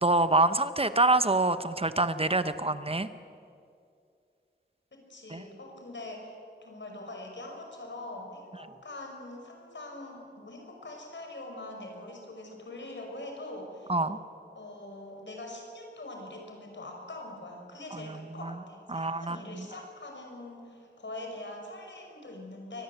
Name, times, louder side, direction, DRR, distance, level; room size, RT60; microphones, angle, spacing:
voice 1, 0.0-3.1 5.3-5.4 13.9-14.2 17.9-18.5 18.9-19.7, right 2 dB, 30° right, 12 dB, 0.9 m, -26 dB
voice 2, 4.9-6.3 6.6-13.9 14.5-22.8, left 2 dB, 75° left, 2 dB, 5.4 m, -43 dB
23.0 x 19.5 x 8.0 m, 2.4 s
wide cardioid pair, 65°, 19 cm